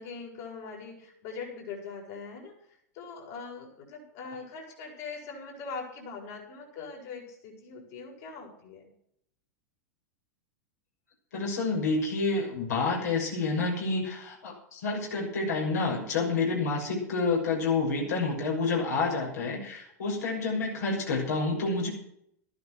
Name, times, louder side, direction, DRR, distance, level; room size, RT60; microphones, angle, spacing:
voice 1, 0.0-2.5 2.9-8.9, left 5 dB, 60° left, -3 dB, 7.5 m, -41 dB
voice 2, 11.3-21.9, left 3 dB, 75° left, -2 dB, 6.5 m, -29 dB
13.0 x 12.0 x 6.2 m, 0.70 s
hypercardioid pair, 105°, 9 cm